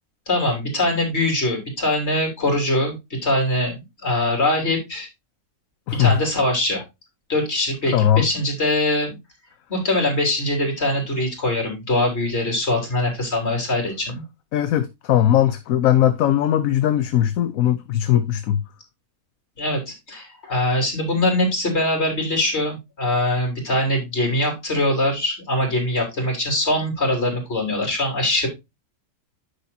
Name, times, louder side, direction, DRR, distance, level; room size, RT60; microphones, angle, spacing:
voice 1, 0.3-5.1 6.0-6.8 7.3-9.2 9.7-14.2 19.6-28.5, left 1 dB, 45° left, 3.6 m, -22 dB
voice 2, 5.9-6.2 7.9-8.3 14.5-18.6, left 11 dB, 65° left, 1.0 m, -19 dB
10.0 x 6.6 x 2.7 m
omnidirectional pair, 1.6 m